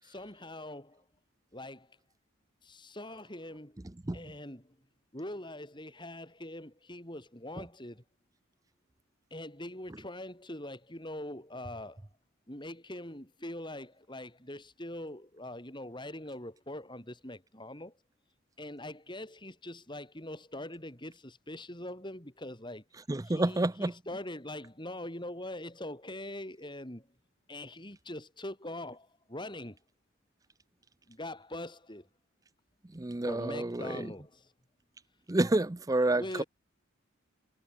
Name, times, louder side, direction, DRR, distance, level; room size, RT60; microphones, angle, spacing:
voice 1, 0.0-1.0 1.5-1.9 2.6-3.7 4.1-4.6 5.1-8.0 9.3-12.0 12.5-17.9 18.6-22.8 23.2-27.0 27.5-29.8 31.1-32.1 33.2-34.5 36.0-36.4, left 1 dB, 25° left, 6.6 m, -43 dB
voice 2, 23.1-23.9 32.9-34.1 35.3-36.4, right 2 dB, 15° right, 0.5 m, -29 dB
head